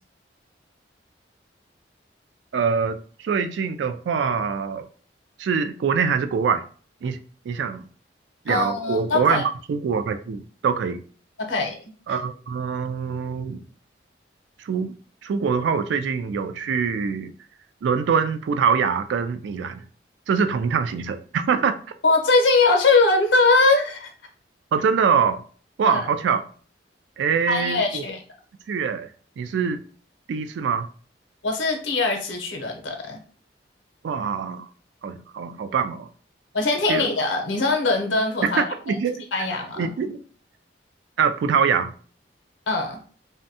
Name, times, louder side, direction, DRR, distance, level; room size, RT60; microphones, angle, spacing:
voice 1, 2.5-4.9 5.4-6.6 7.0-7.2 7.5-7.9 8.5-9.4 9.7-11.0 12.1-13.6 14.6-15.0 15.2-17.3 17.8-19.8 20.3-21.8 24.7-25.4 25.8-26.4 27.2-28.0 28.7-29.8 30.3-30.9 34.0-34.7 35.0-36.1 36.9-37.1 38.4-39.2 39.8-40.2 41.2-41.9, right 6 dB, 75° right, 0.3 m, -24 dB
voice 2, 8.5-9.4 11.4-11.8 12.1-12.2 22.0-24.1 25.8-26.0 27.5-28.2 31.4-33.2 36.5-39.0 39.3-39.9 42.7-43.0, left 3 dB, 90° left, 0.7 m, -21 dB
2.6 x 2.2 x 2.6 m
head